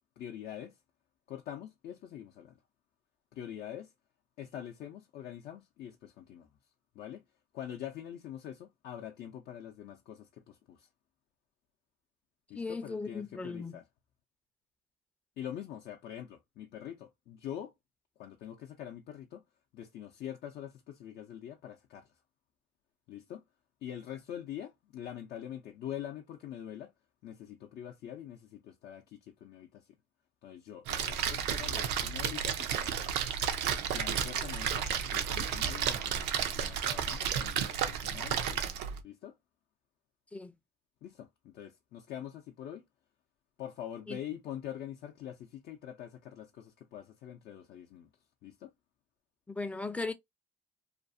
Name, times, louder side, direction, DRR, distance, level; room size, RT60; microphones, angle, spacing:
voice 1, 0.2-0.7 1.3-2.5 3.3-3.9 4.4-6.5 7.0-7.2 7.5-10.9 12.5-13.8 15.4-17.7 18.2-19.4 19.7-22.0 23.1-23.4 23.8-26.9 27.2-29.8 30.4-33.0 33.9-38.7 39.0-39.3 41.0-42.8 43.6-48.1 48.4-48.7, left 10 dB, 70° left, 0.5 m, -44 dB
voice 2, 12.5-13.8 40.3-40.5 44.1-44.2 49.5-50.1, left 3 dB, 10° left, 0.4 m, -37 dB
Splash splatter, 30.9-39.0, right 8 dB, 90° right, 0.5 m, -32 dB
2.5 x 2.4 x 2.5 m
cardioid pair, 110°, 17 cm